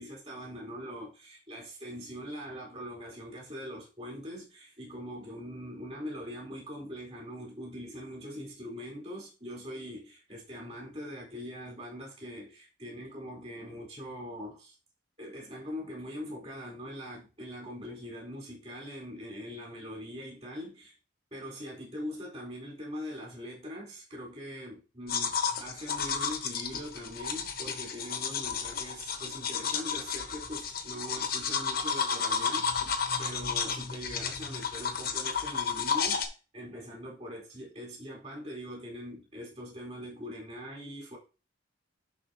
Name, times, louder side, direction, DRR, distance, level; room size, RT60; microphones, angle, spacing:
voice 1, 0.0-14.8 15.2-20.9 21.3-25.3 25.6-41.2, equal, 30° right, 4.7 m, -42 dB
sound 1, 25.1-36.3, left 6 dB, 50° left, 1.1 m, -32 dB
11.0 x 4.7 x 3.0 m
head